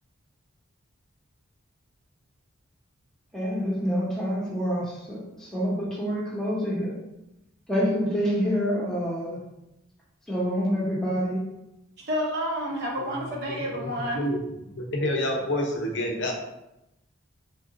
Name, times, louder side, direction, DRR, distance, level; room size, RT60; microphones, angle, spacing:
voice 1, 3.3-6.9 7.7-9.4 10.3-11.4, equal, ahead, -6 dB, 0.9 m, -27 dB
voice 2, 12.0-14.2, equal, 50° right, -2 dB, 0.9 m, -29 dB
voice 3, 13.5-14.4 14.7-16.3, left 1 dB, 55° left, 2 dB, 0.6 m, -29 dB
3.9 x 2.5 x 3.8 m, 0.89 s
head